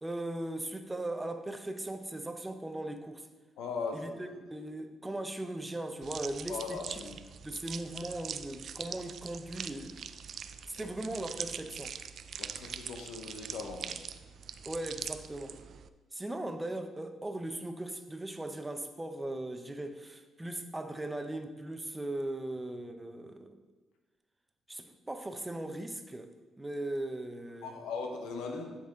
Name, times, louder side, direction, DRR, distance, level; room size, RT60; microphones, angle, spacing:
voice 1, 0.0-3.3 3.9-7.1 7.4-10.1 10.7-11.9 14.7-15.6 16.1-23.6 24.7-26.3 26.6-27.9, right 1 dB, 15° right, 7 dB, 0.7 m, -38 dB
voice 2, 3.6-4.4 6.5-7.2 10.8-10.9 12.4-14.0 27.6-28.8, left 4 dB, 90° left, 3 dB, 0.8 m, -39 dB
sound 1, 6.0-15.9, right 7 dB, 60° right, 0.3 m, -43 dB
10.0 x 4.1 x 3.7 m, 1.2 s
cardioid pair, 90°, 0 cm